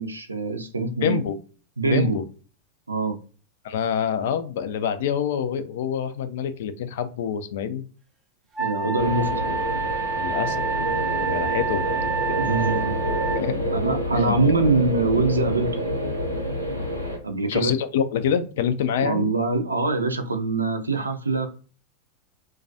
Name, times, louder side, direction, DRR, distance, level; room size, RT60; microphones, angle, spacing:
voice 1, 0.0-1.2 1.8-2.2 2.9-3.2 8.6-9.4 12.3-13.1 13.7-15.8 17.2-17.7 19.0-21.5, right 3 dB, 80° right, 0.4 m, -24 dB
voice 2, 1.0-1.4 1.9-2.2 3.6-7.8 10.2-10.6 11.2-12.5 13.3-13.6 14.1-14.4 17.5-19.3, left 8 dB, 55° left, 0.3 m, -26 dB
Wind instrument woodwind instrument, 8.6-13.5, right 5 dB, 25° right, 0.6 m, -28 dB
sound 1, 9.0-17.2, equal, 90° left, 0.7 m, -28 dB
2.3 x 2.2 x 2.6 m
figure-of-eight pair, 90°, 0 cm